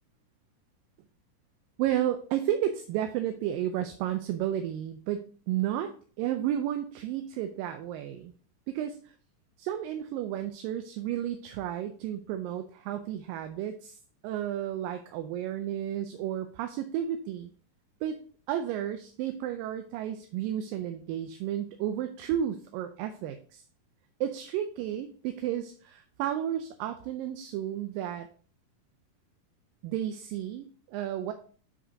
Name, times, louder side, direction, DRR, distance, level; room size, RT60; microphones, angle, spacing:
voice 1, 1.8-8.3 8.7-9.0 9.6-14.0 14.2-17.5 18.0-18.2 18.5-23.6 24.2-28.3 29.8-31.3, right 11 dB, 80° right, 7 dB, 2.2 m, -32 dB
8.8 x 5.1 x 2.7 m, 0.42 s
omnidirectional pair, 4.1 m